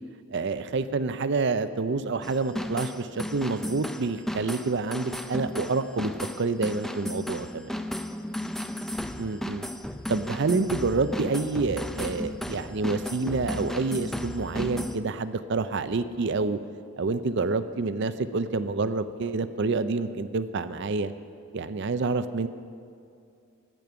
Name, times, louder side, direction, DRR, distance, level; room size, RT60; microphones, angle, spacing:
voice 1, 0.3-6.1 6.4-7.8 9.2-9.7 10.1-16.6 17.0-21.1 21.5-22.5, right 3 dB, 55° right, 12 dB, 0.5 m, -28 dB
sound 1, 2.2-15.0, left 1 dB, ahead, 0.4 m, -34 dB
15.0 x 5.3 x 9.5 m, 2.4 s
head